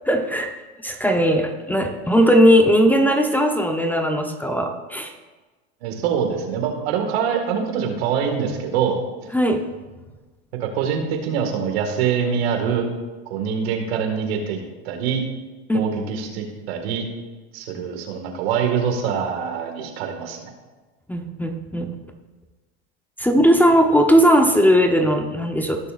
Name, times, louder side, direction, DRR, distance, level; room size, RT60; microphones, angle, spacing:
voice 1, 0.1-0.5 0.8-5.1 9.3-9.6 15.7-16.0 21.1-21.9 23.2-25.8, equal, 5° left, 5 dB, 0.8 m, -18 dB
voice 2, 5.8-9.0 10.6-12.9 13.3-15.2 15.7-17.0 17.5-20.5, right 7 dB, 70° right, 4 dB, 1.9 m, -24 dB
17.5 x 6.8 x 2.5 m, 1.3 s
hypercardioid pair, 95°, 32 cm